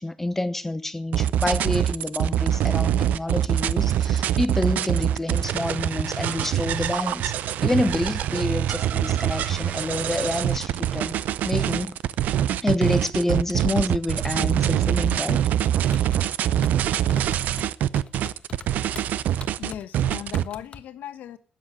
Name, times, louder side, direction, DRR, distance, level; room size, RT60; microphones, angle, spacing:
voice 1, 0.0-7.3 7.6-11.2 11.4-12.0 12.6-15.5, left 2 dB, 10° left, 0.9 m, -27 dB
sound 1, 1.1-20.4, right 10 dB, 75° right, 0.6 m, -24 dB
sound 2, 15.9-20.8, left 6 dB, 40° left, 1.3 m, -43 dB
voice 2, 19.6-21.4, left 10 dB, 80° left, 1.3 m, -37 dB
13.0 x 9.2 x 8.9 m
cardioid pair, 140°, 3 cm